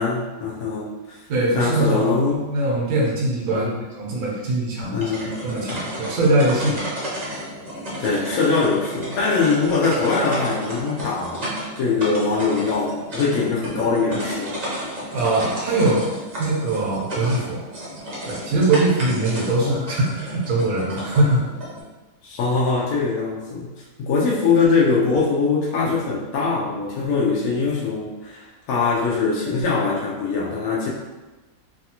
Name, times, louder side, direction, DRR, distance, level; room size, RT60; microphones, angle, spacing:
voice 1, 0.0-1.2 1.5-2.5 3.5-3.8 4.9-5.3 8.0-14.6 19.6-19.8 22.2-30.9, left 4 dB, 75° left, -4 dB, 1.0 m, -22 dB
voice 2, 1.3-2.1 2.5-3.7 4.0-4.9 5.4-6.9 15.1-16.0 16.4-17.6 18.2-21.4, right 2 dB, 80° right, -4 dB, 1.3 m, -21 dB
sound 1, 4.8-21.8, right 1 dB, 40° right, 0.7 m, -32 dB
3.2 x 2.3 x 2.8 m, 1.1 s
omnidirectional pair, 1.5 m